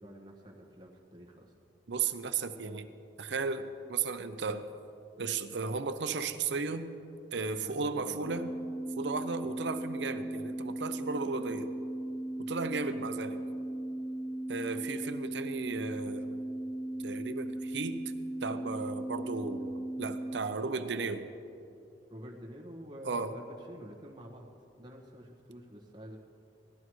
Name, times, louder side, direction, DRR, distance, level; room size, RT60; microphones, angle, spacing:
voice 1, 0.0-1.5 7.6-8.2 9.4-9.6 13.0-13.2 22.1-26.2, equal, 25° right, -2 dB, 1.3 m, -48 dB
voice 2, 1.9-2.9 3.2-4.6 5.2-6.9 7.3-8.5 9.0-11.7 12.4-13.4 14.5-16.4 17.0-18.0 18.4-21.3 23.0-23.3, right 4 dB, 80° right, 10 dB, 0.6 m, -35 dB
sound 1, 8.2-20.4, right 1 dB, 65° left, 0.8 m, -37 dB
17.5 x 13.5 x 3.1 m, 2.7 s
head